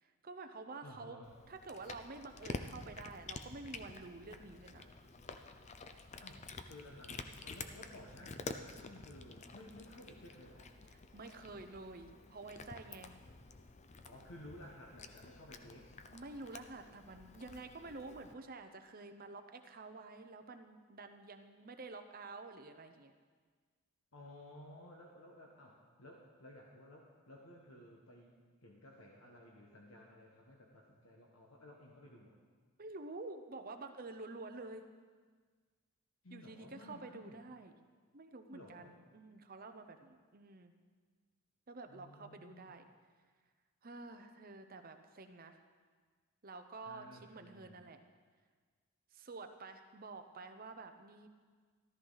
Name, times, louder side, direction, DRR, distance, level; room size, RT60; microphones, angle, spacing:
voice 1, 0.0-1.2 1.5-4.9 10.9-13.1 16.1-23.1 32.8-34.8 36.3-37.7 38.1-40.7 41.7-42.8 43.8-45.6 46.4-48.0 49.1-51.3, right 3 dB, 40° right, 7 dB, 0.8 m, -49 dB
voice 2, 0.8-1.3 6.2-10.7 14.0-15.9 24.1-32.4 36.2-37.4 38.5-38.9 41.9-42.7 46.8-47.8, left 1 dB, 70° left, -1 dB, 1.3 m, -55 dB
Cat, 1.2-18.3, left 3 dB, 30° left, 0.6 m, -50 dB
13.5 x 13.5 x 4.0 m, 1.5 s
head